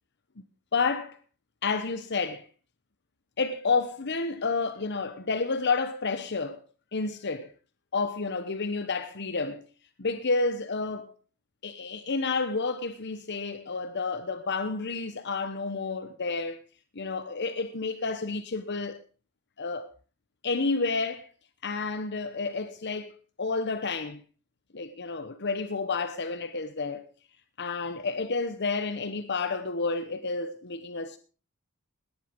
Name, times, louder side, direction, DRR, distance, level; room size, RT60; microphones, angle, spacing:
voice 1, 0.7-1.2 1.6-2.4 3.4-6.6 6.9-7.5 7.9-9.6 10.0-11.1 11.6-16.6 16.9-19.0 19.6-19.9 20.4-21.3 21.6-24.2 24.7-27.1 27.6-31.2, left 4 dB, 50° left, 1.0 m, -30 dB
18.0 x 11.0 x 5.2 m
head